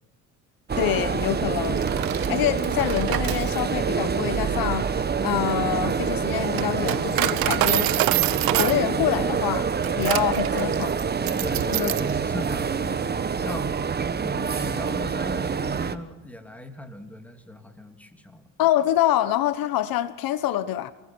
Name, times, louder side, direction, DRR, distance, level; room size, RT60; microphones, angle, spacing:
sound 1, 0.7-16.0, right 6 dB, 25° right, 1.3 m, -26 dB
voice 1, 0.8-1.8 2.3-7.9 8.4-9.6 10.0-11.0 11.7-11.9 18.6-20.9, left 13 dB, 70° left, 1.3 m, -26 dB
Coin (dropping), 1.6-12.2, right 17 dB, 70° right, 1.0 m, -28 dB
voice 2, 11.4-13.8 14.2-18.5, equal, 5° left, 3.0 m, -37 dB
28.0 x 20.5 x 6.3 m
cardioid pair, 100°, 36 cm